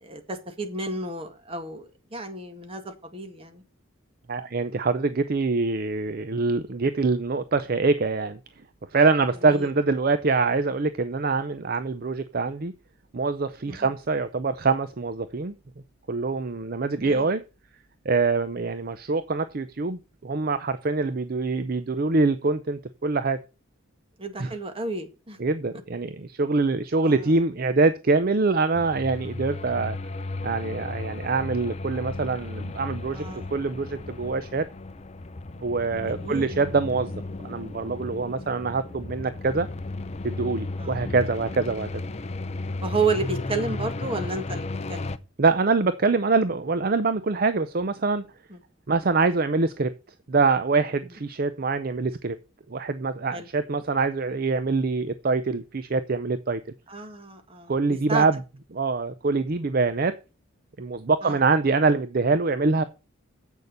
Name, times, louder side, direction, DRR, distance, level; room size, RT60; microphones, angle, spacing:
voice 1, 0.0-3.6 9.5-9.7 13.7-13.9 17.0-17.3 24.2-25.4 27.0-27.2 33.1-33.5 36.1-36.5 40.8-41.0 42.8-45.2 48.5-48.6 53.3-53.5 56.9-58.3 61.2-61.4, right 3 dB, 25° right, 1.8 m, -31 dB
voice 2, 4.3-8.4 8.9-12.7 13.1-15.5 16.1-17.4 18.1-23.4 24.4-24.5 25.4-30.0 30.4-34.7 35.6-37.1 37.4-39.7 40.2-41.9 45.4-48.3 48.9-49.9 50.3-52.4 52.7-56.6 57.7-58.4 58.7-60.1 60.8-62.8, right 3 dB, 45° right, 0.6 m, -24 dB
sound 1, 28.7-45.2, left 2 dB, 30° left, 0.6 m, -34 dB
8.2 x 6.6 x 6.7 m
head